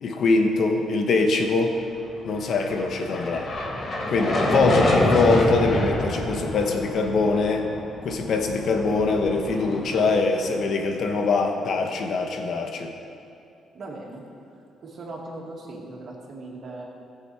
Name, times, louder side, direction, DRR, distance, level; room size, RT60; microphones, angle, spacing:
voice 1, 0.0-1.8 2.2-3.5 4.1-7.7 8.0-12.9, left 3 dB, 65° left, 4 dB, 1.2 m, -23 dB
sound 1, 2.4-10.8, left 1 dB, 45° left, 1.6 m, -27 dB
voice 2, 13.7-14.3 14.8-16.8, right 2 dB, 50° right, -2 dB, 2.4 m, -38 dB
15.0 x 7.1 x 4.8 m, 2.6 s
cardioid pair, 90°, 0 cm